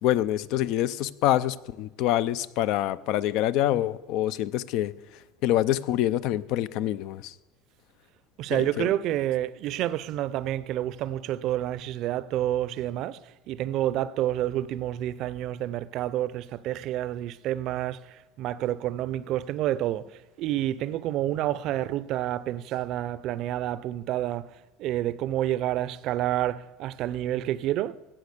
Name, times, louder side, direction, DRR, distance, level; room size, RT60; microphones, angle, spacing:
voice 1, 0.0-4.9 5.4-7.3 8.5-8.9, left 13 dB, 65° left, 0.5 m, -26 dB
voice 2, 8.4-13.2 13.5-27.9, right 13 dB, 55° right, 0.5 m, -29 dB
16.5 x 6.1 x 6.7 m
supercardioid pair, 110°, 0 cm